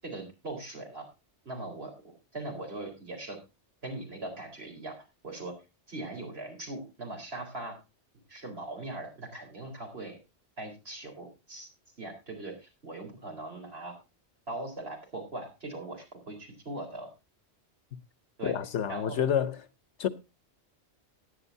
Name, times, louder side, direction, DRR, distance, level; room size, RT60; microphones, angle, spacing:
voice 1, 0.0-1.1 1.4-3.4 3.8-5.6 5.9-7.8 8.3-10.2 10.6-11.7 12.0-14.0 14.5-17.1 18.4-18.5 18.9-19.2, right 2 dB, 60° right, 4.6 m, -40 dB
voice 2, 18.4-19.6 20.0-20.1, left 9 dB, 85° left, 1.2 m, -28 dB
17.5 x 10.0 x 2.7 m
omnidirectional pair, 1.1 m